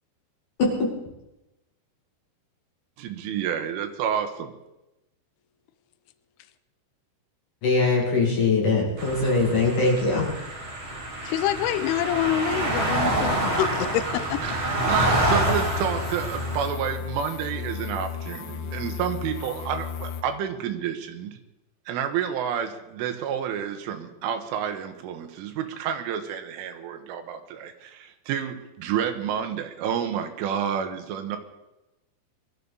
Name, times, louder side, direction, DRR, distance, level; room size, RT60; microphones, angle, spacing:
voice 1, 0.6-0.9 7.6-10.3, left 3 dB, 50° left, 3.2 m, -22 dB
voice 2, 3.0-4.5 14.4-21.4 21.9-31.4, right 8 dB, 85° right, 3.7 m, -29 dB
sound 1, 9.0-16.7, right 1 dB, 20° right, 1.8 m, -27 dB
voice 3, 11.3-14.4, left 11 dB, 90° left, 3.2 m, -26 dB
sound 2, 15.2-20.2, left 8 dB, 75° left, 3.2 m, -34 dB
21.5 x 13.5 x 4.1 m
omnidirectional pair, 5.6 m